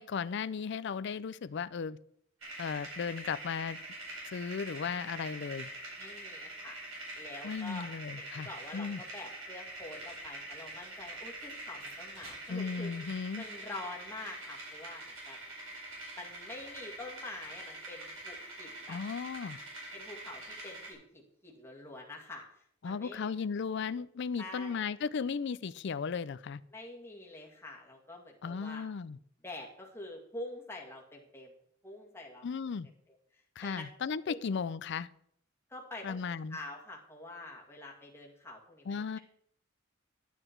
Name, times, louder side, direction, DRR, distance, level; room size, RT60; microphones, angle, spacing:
voice 1, 0.0-2.0 2.6-3.8 4.3-5.7 7.4-9.0 12.5-13.4 18.9-19.6 22.8-26.6 28.4-29.2 32.4-32.9 33.6-35.1 36.0-36.6 38.9-39.2, left 5 dB, 60° left, 16 dB, 0.4 m, -36 dB
sound 1, 2.4-20.9, right 2 dB, 80° right, 4.7 m, -45 dB
voice 2, 6.0-6.8 7.2-7.9 8.2-15.4 16.2-19.0 19.9-23.3 24.4-24.8 26.7-28.9 29.4-31.5 31.8-32.5 33.3-33.8 34.3-34.4 35.7-36.2 36.5-39.2, left 2 dB, 10° left, -2 dB, 2.0 m, -46 dB
10.0 x 9.8 x 4.5 m, 0.69 s
head